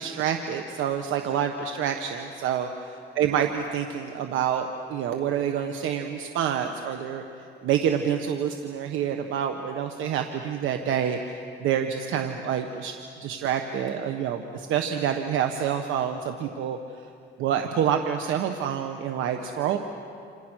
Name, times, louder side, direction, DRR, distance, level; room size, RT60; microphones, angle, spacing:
voice 1, 0.0-2.7 3.1-7.2 7.6-12.9 13.2-17.1 17.4-19.8, right 8 dB, 90° right, 5 dB, 1.3 m, -27 dB
28.5 x 27.5 x 6.4 m, 2.4 s
cardioid pair, 90°, 20 cm